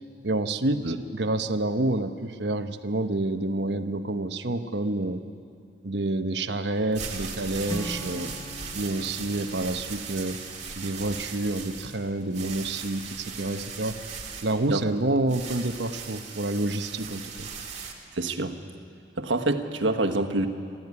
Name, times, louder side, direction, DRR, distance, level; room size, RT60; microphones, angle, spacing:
voice 1, 0.2-5.2 5.8-8.3 8.7-10.4 10.8-14.0 14.4-17.5, right 2 dB, 65° right, 9 dB, 1.0 m, -28 dB
sound 1, 6.7-17.9, right 6 dB, 40° right, 2.3 m, -38 dB
Strum, 7.7-11.8, equal, 15° left, 1.1 m, -42 dB
voice 2, 18.1-18.6 19.2-20.5, right 2 dB, 90° right, 5 dB, 1.4 m, -26 dB
24.5 x 14.0 x 9.7 m, 2.3 s
head